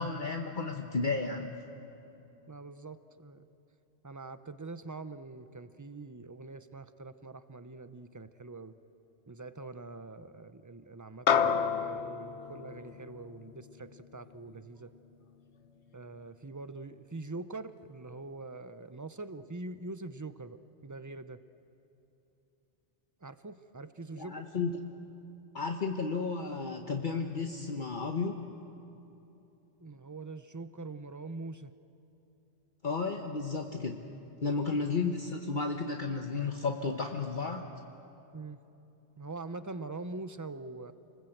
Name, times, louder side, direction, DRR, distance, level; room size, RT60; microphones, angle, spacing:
voice 1, 0.0-1.5 24.1-24.8 25.5-28.4 32.8-34.0 34.4-37.7, left 4 dB, 45° left, 3 dB, 1.2 m, -33 dB
voice 2, 2.5-3.5 4.0-8.7 9.3-14.9 15.9-21.4 23.2-24.4 29.8-31.7 38.3-38.6 39.2-40.9, right 3 dB, 20° right, 12 dB, 0.6 m, -44 dB
sound 1, 11.3-15.9, left 7 dB, 75° left, 1.2 m, -32 dB
29.0 x 20.5 x 7.9 m, 3.0 s
omnidirectional pair, 1.1 m